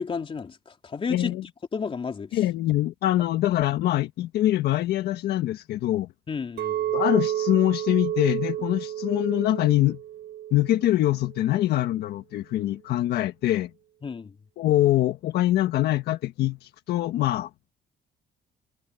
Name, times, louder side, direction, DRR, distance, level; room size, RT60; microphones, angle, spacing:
voice 1, 0.0-1.4 1.7-2.5 6.3-6.9 14.0-14.4, left 5 dB, 30° left, 3.5 m, -32 dB
voice 2, 1.1-1.4 2.3-6.1 6.9-10.0 10.5-13.7 14.6-17.5, left 14 dB, 75° left, 1.4 m, -24 dB
Chink clink, 6.6-10.9 11.3-11.7, right 12 dB, 70° right, 4.0 m, -30 dB
cardioid pair, 110°, 17 cm